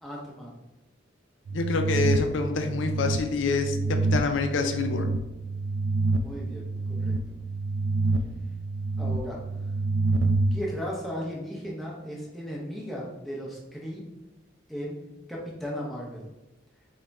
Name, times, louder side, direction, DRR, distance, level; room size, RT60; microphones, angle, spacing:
voice 1, 0.0-0.6 6.1-7.1 9.0-9.4 10.5-14.0 14.7-15.0 15.3-16.2, equal, ahead, -5 dB, 0.7 m, -36 dB
voice 2, 1.5-5.1, left 4 dB, 80° left, 5 dB, 0.4 m, -27 dB
sound 1, 1.5-10.6, right 3 dB, 70° right, 0.3 m, -28 dB
3.5 x 2.3 x 4.0 m, 0.98 s
head